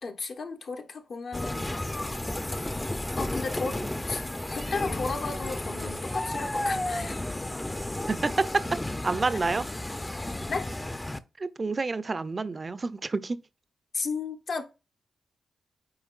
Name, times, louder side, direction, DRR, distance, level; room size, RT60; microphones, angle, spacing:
voice 1, 0.0-1.7 3.2-3.8 4.1-4.3 4.5-7.3 10.5-10.7 13.9-14.6, left 4 dB, 65° left, 1.1 m, -34 dB
sound 1, 1.3-11.2, left 1 dB, 15° left, 0.5 m, -33 dB
voice 2, 8.1-9.7 11.4-13.4, right 3 dB, 40° right, 0.5 m, -28 dB
8.8 x 4.4 x 2.4 m
cardioid pair, 60°, 0 cm